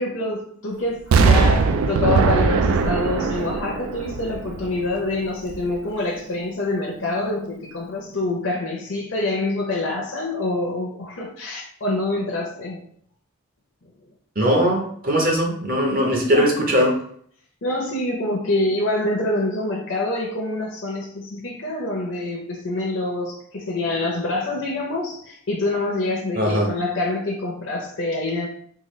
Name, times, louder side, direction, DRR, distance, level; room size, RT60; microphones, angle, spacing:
voice 1, 0.0-12.8 16.3-16.5 17.6-28.5, left 2 dB, 60° left, -3 dB, 0.6 m, -26 dB
Explosion, 1.1-5.0 5.5-5.6, right 4 dB, 80° right, 0.3 m, -20 dB
voice 2, 14.4-17.0 26.4-26.7, equal, 40° right, 0 dB, 0.8 m, -20 dB
3.7 x 2.4 x 3.1 m, 0.62 s
head